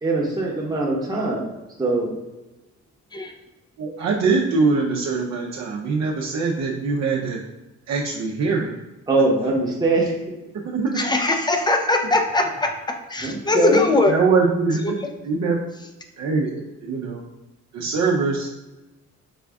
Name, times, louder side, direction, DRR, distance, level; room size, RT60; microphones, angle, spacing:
voice 1, 0.0-1.4 1.8-2.2 9.1-10.1 13.2-13.8, right 3 dB, 15° right, -3 dB, 1.0 m, -22 dB
voice 2, 3.8-7.4 7.9-8.7 10.5-11.0 13.3-13.4 14.0-15.0 15.2-15.6 16.2-17.2 17.7-18.5, right 4 dB, 60° right, -2 dB, 0.7 m, -23 dB
voice 3, 11.0-12.7 13.1-14.1, left 2 dB, 15° left, 4 dB, 0.6 m, -20 dB
5.1 x 2.4 x 3.5 m, 1.1 s
cardioid pair, 90°, 30 cm